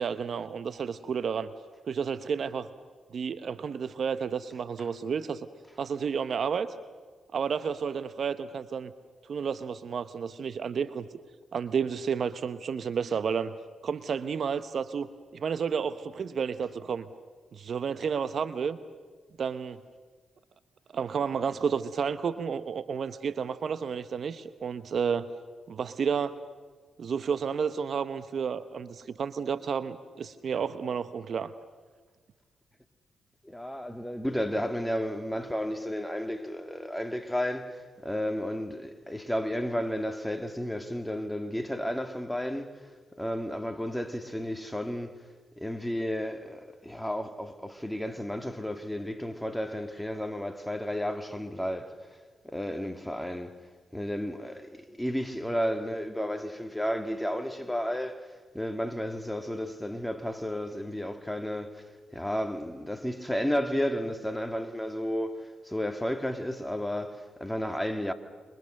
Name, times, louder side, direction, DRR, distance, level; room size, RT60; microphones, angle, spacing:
voice 1, 0.0-1.5 1.9-2.7 3.1-5.5 5.8-6.7 7.3-8.9 9.3-11.1 11.5-13.5 13.8-15.1 15.3-17.1 17.5-18.8 19.4-19.8 20.9-25.3 25.7-26.4 27.0-31.5, right 6 dB, 60° right, 1.0 m, -31 dB
voice 2, 33.4-42.9 43.1-45.2 45.6-52.0 52.4-53.6 53.9-61.9 62.1-68.1, equal, 5° left, 2.4 m, -32 dB
27.5 x 25.0 x 6.6 m
supercardioid pair, 50°, 0 cm